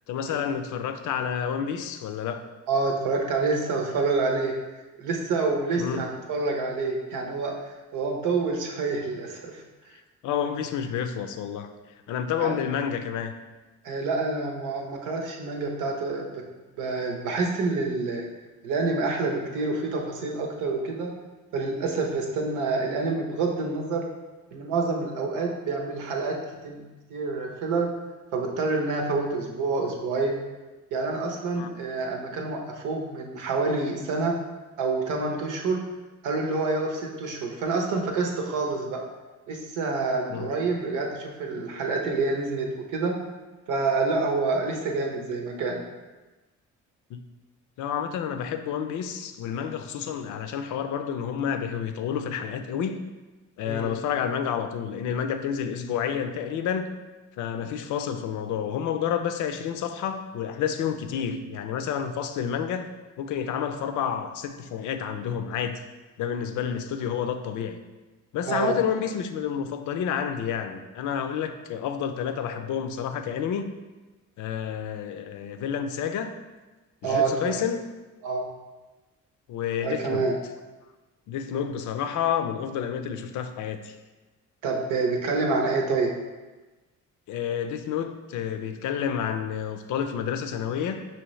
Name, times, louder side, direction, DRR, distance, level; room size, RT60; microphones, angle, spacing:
voice 1, 0.1-2.4 5.8-6.0 10.2-11.7 12.1-13.3 31.5-31.7 40.3-40.5 47.1-47.2 47.8-53.1 53.6-56.9 57.4-62.9 63.2-65.8 66.2-67.8 68.3-73.7 74.4-76.3 77.0-77.9 79.5-80.3 81.3-84.0 87.3-91.1, left 8 dB, 75° left, 8 dB, 0.5 m, -29 dB
voice 2, 2.7-4.5 5.0-7.5 7.9-9.6 12.4-12.6 13.8-16.4 16.8-18.3 18.6-21.1 21.5-24.1 24.5-26.4 26.6-26.8 27.1-27.9 28.3-30.4 30.9-34.4 34.8-35.8 36.2-39.0 39.5-43.1 43.7-45.9 53.6-53.9 68.5-68.8 77.0-77.5 78.2-78.4 79.8-80.3 84.6-86.1, right 3 dB, 90° right, 1 dB, 0.9 m, -27 dB
5.6 x 3.0 x 3.1 m, 1.2 s
cardioid pair, 90°, 30 cm